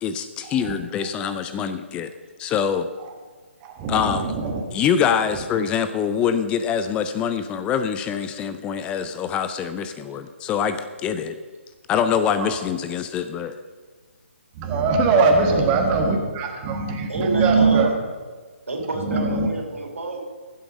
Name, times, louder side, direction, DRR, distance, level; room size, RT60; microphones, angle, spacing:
voice 1, 0.0-2.1 2.4-2.9 3.9-4.3 4.7-11.4 11.9-13.6, left 7 dB, 15° left, 10 dB, 0.4 m, -24 dB
voice 2, 3.6-4.6 12.4-12.6 14.6-17.9 19.1-19.5, right 4 dB, 25° right, 2 dB, 1.5 m, -21 dB
voice 3, 17.1-18.0 18.7-20.2, right 2 dB, 80° right, 1 dB, 3.6 m, -28 dB
15.0 x 7.9 x 5.2 m, 1.4 s
figure-of-eight pair, 145°, 7 cm